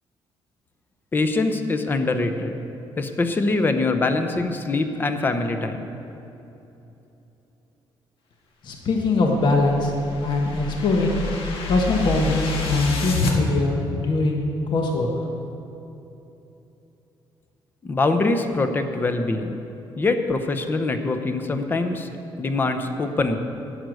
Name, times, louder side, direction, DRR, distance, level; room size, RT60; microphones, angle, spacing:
voice 1, 1.1-2.5 3.0-5.8 17.8-19.5 20.0-22.1 22.4-23.4, left 3 dB, 20° left, 7 dB, 0.7 m, -23 dB
voice 2, 8.6-10.0 10.2-11.2 11.7-15.1, left 3 dB, 55° left, 1 dB, 1.2 m, -22 dB
sound 1, 9.3-13.4, left 2 dB, 75° left, 1.6 m, -29 dB
11.0 x 9.4 x 6.3 m, 3.0 s
cardioid pair, 170°, 9 cm